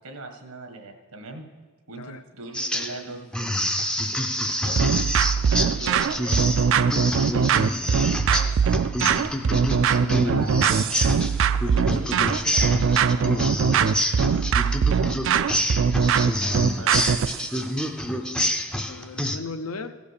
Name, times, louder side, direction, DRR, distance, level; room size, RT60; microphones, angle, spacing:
voice 1, 0.0-1.5 1.9-3.7 4.4-4.8 5.5-7.6 7.9-8.9 10.1-11.2 11.7-14.0 16.4-17.3, right 2 dB, 85° right, 3 dB, 1.6 m, -40 dB
sound 1, 2.5-3.0 3.3-19.4, left 1 dB, 5° left, 0.4 m, -28 dB
sound 2, 4.8-17.4, right 6 dB, 60° right, 0.4 m, -21 dB
voice 2, 15.0-15.4 17.4-17.7 18.8-20.0, left 3 dB, 90° left, 9 dB, 0.7 m, -38 dB
15.5 x 5.2 x 6.6 m, 1.3 s
head